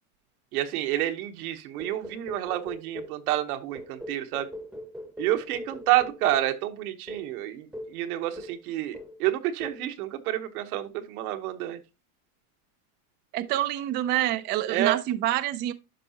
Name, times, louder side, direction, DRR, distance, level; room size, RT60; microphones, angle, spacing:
voice 1, 0.5-4.5 5.2-11.8 14.7-15.0, right 13 dB, 80° right, 1.2 m, -29 dB
sound 1, 1.8-3.2 3.7-6.6 7.1-7.3 7.7-8.0 8.4-8.7 8.9-9.2 9.6-9.9, equal, ahead, 0.8 m, -41 dB
voice 2, 13.3-15.7, right 13 dB, 25° right, 0.4 m, -27 dB
11.0 x 5.5 x 2.8 m
supercardioid pair, 135°, 43 cm